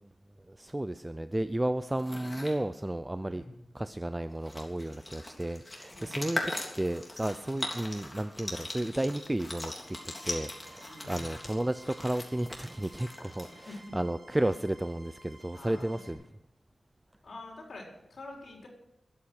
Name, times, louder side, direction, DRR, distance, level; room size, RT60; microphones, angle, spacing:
voice 1, 0.5-3.4 3.7-6.4 6.8-16.2, right 1 dB, 15° right, 11 dB, 0.5 m, -33 dB
sound 1, 1.9-2.6 4.0-4.1 4.3-13.9, left 1 dB, 20° left, 3.5 m, -40 dB
voice 2, 3.2-3.6 5.9-6.3 7.4-7.6 10.8-11.3 13.6-14.0 15.5-16.2 17.2-18.7, left 2 dB, 65° left, 0 dB, 4.7 m, -46 dB
sound 2, 9.8-16.1, right 1 dB, 40° right, 3.8 m, -55 dB
22.0 x 8.8 x 6.5 m, 0.85 s
wide cardioid pair, 120°, 0 cm